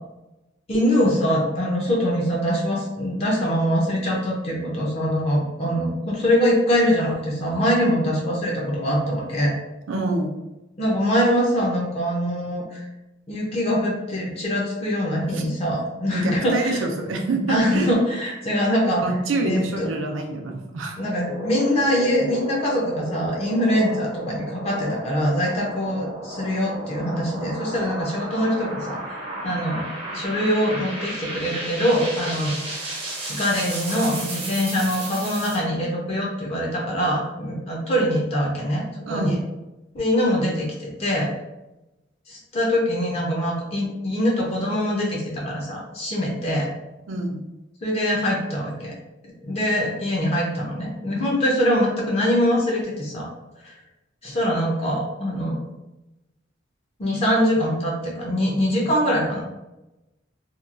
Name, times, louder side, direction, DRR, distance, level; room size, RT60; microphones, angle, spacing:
voice 1, 0.7-9.5 10.8-12.8 13.3-16.8 17.5-19.0 19.4-19.9 21.0-29.8 30.1-33.0 33.3-39.4 39.9-41.3 42.3-46.7 47.8-48.9 49.4-53.3 53.6-53.7 54.2-55.6 57.0-59.4, equal, 30° left, -2 dB, 0.5 m, -23 dB
voice 2, 9.9-10.3 15.3-15.4 16.1-17.9 19.0-21.0 39.1-39.4 47.1-47.4, right 2 dB, 80° right, 3 dB, 0.5 m, -26 dB
sound 1, 21.0-35.6, right 1 dB, 30° right, 0.5 m, -34 dB
2.9 x 2.2 x 2.4 m, 0.98 s
head